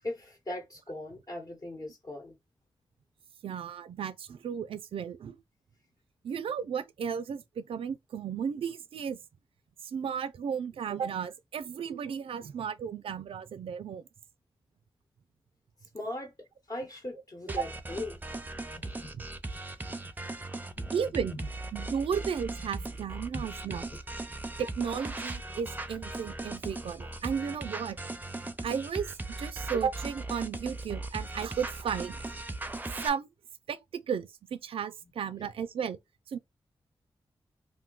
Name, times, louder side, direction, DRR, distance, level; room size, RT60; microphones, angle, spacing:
voice 1, 0.0-2.3 15.9-16.3 16.7-18.2 18.7-19.1 19.5-19.6 20.6-20.9 23.3-23.4 23.9-24.0 24.3-24.4, left 1 dB, 40° left, 1.0 m, -39 dB
voice 2, 3.4-5.4 6.2-9.2 9.8-14.0 17.6-17.7 19.2-19.3 20.9-21.3 21.7-23.9 24.6-28.0 28.6-29.1 29.4-32.4 33.0-33.3 33.7-36.0 36.3-36.4, right 7 dB, 75° right, 0.4 m, -34 dB
sound 1, 17.5-33.1, right 2 dB, 20° right, 0.5 m, -38 dB
2.6 x 2.2 x 3.8 m
cardioid pair, 75°, 10 cm